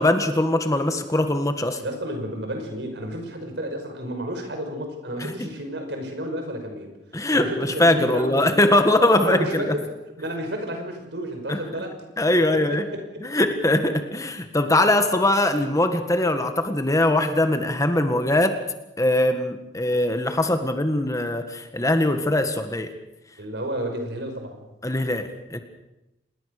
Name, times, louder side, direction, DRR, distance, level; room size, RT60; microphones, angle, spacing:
voice 1, 0.0-1.8 5.2-5.3 7.1-9.8 11.5-11.6 12.2-12.8 13.2-18.5 19.0-22.9 24.8-25.6, left 1 dB, 20° left, 7 dB, 1.7 m, -21 dB
voice 2, 1.8-6.9 7.3-8.5 9.0-9.9 10.2-12.0 12.4-13.0 14.8-14.9 23.4-24.7, right 1 dB, 70° right, 5 dB, 5.7 m, -31 dB
27.0 x 20.5 x 6.7 m, 0.93 s
head